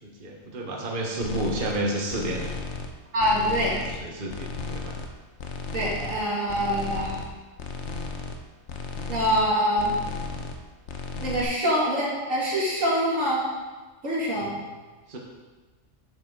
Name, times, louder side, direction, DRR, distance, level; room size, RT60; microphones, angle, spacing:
voice 1, 0.0-2.7 4.0-5.0 14.3-14.5 15.1-15.2, right 1 dB, 45° right, -1 dB, 1.3 m, -31 dB
sound 1, 1.2-1.8 2.1-2.9 3.2-4.0 4.3-5.1 5.4-6.2 6.5-7.3 7.6-8.4 8.7-9.5 9.8-10.6 10.9-11.4, left 4 dB, 65° left, 1.2 m, -35 dB
voice 2, 3.1-3.8 5.7-7.2 9.1-9.9 11.2-13.4 14.0-14.5, equal, 90° right, -6 dB, 2.9 m, -24 dB
9.7 x 7.7 x 3.8 m, 1.3 s
omnidirectional pair, 1.3 m